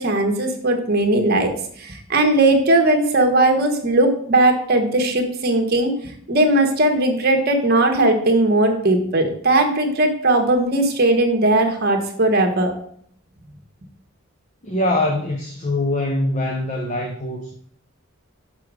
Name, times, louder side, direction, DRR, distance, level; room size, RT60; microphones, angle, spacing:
voice 1, 0.0-1.5 1.8-5.9 6.3-12.7, right 2 dB, 45° right, 1.2 m, -18 dB
voice 2, 14.6-17.5, left 1 dB, 35° left, 0.7 m, -23 dB
6.7 x 5.0 x 4.8 m
head